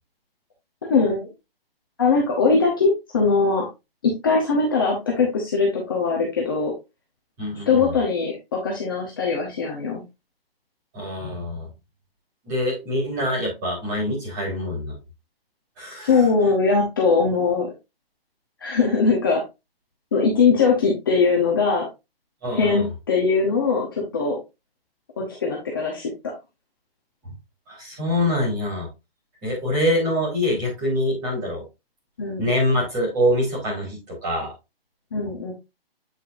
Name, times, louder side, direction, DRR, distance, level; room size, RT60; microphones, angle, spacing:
voice 1, 0.9-1.3 2.0-3.7 4.0-6.7 7.7-10.0 16.0-17.7 18.6-19.4 20.1-21.9 22.5-24.4 25.2-26.1 32.2-32.5 35.1-35.5, left 4 dB, 20° left, -2 dB, 0.9 m, -21 dB
voice 2, 7.4-7.9 10.9-11.7 12.4-14.9 15.8-16.2 22.4-22.9 27.7-28.9 29.4-31.6 32.4-34.5, left 1 dB, 15° right, -5 dB, 3.7 m, -25 dB
8.3 x 5.4 x 2.5 m, 0.24 s
hypercardioid pair, 180°, 31 cm